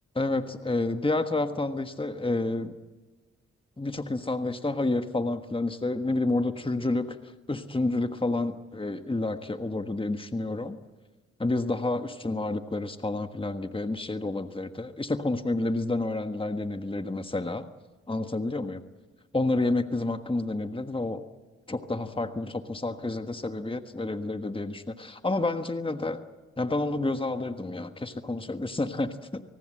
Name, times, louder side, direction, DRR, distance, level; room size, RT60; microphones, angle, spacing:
voice 1, 0.1-2.7 3.8-7.2 7.5-10.8 11.4-17.7 18.1-18.8 19.3-21.2 21.7-26.2 26.6-29.4, left 2 dB, 20° left, 8 dB, 1.4 m, -29 dB
27.5 x 19.5 x 7.7 m, 1.2 s
cardioid pair, 45°, 29 cm